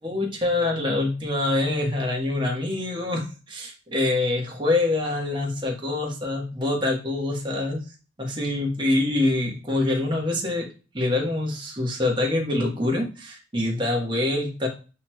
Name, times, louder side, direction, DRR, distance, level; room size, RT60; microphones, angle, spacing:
voice 1, 0.0-7.8 8.2-10.7 10.9-14.7, left 2 dB, 25° right, 0 dB, 1.2 m, -25 dB
8.2 x 3.0 x 2.2 m, 0.34 s
head